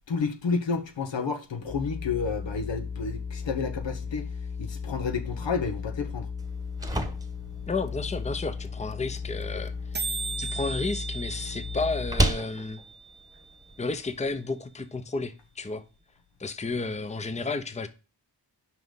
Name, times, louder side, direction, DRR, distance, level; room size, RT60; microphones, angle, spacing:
voice 1, 0.1-4.3 4.6-6.3, left 5 dB, 70° left, 1.1 m, -30 dB
sound 1, 1.7-12.2, left 5 dB, 55° left, 3.5 m, -36 dB
sound 2, 6.4-14.3, right 1 dB, 10° right, 1.2 m, -34 dB
voice 2, 7.7-9.7 10.0-12.8 13.8-15.8 16.4-17.9, left 3 dB, 15° left, 0.7 m, -32 dB
sound 3, 7.9-8.0 8.1-8.2 8.4-8.7 8.9-9.0 9.2-9.4 9.7-9.8 9.9-13.9, right 4 dB, 25° right, 0.6 m, -37 dB
5.8 x 5.1 x 3.9 m
cardioid pair, 40°, 45 cm